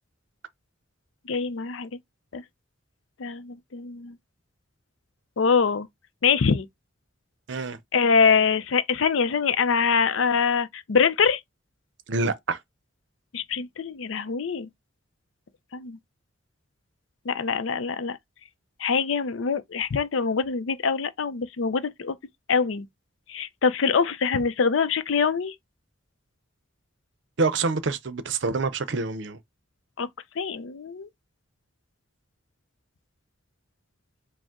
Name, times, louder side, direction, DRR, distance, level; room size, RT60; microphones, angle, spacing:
voice 1, 1.3-1.9 2.3-2.4 3.2-4.2 5.4-5.9 6.2-6.7 7.9-11.4 13.3-14.7 15.7-16.0 17.3-18.2 18.8-22.2 22.5-22.9 23.3-25.5 30.0-30.1 30.4-31.1, left 5 dB, 75° left, 0.5 m, -24 dB
voice 2, 12.1-12.6 27.4-29.4, right 3 dB, 65° right, 0.6 m, -26 dB
5.1 x 2.1 x 3.6 m
head